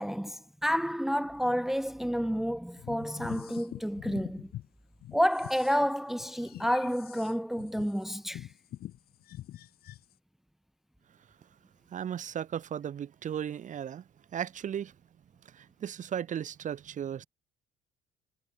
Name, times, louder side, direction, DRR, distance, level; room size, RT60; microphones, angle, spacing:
voice 1, 0.0-4.5 5.1-8.5, equal, ahead, 1.2 m, -30 dB
sound 1, 2.8-4.7 5.0-10.1, left 13 dB, 65° left, 1.4 m, -44 dB
voice 2, 11.9-14.0 14.3-14.9 15.5-17.3, right 9 dB, 50° right, 2.2 m, -36 dB
cardioid pair, 110°, 17 cm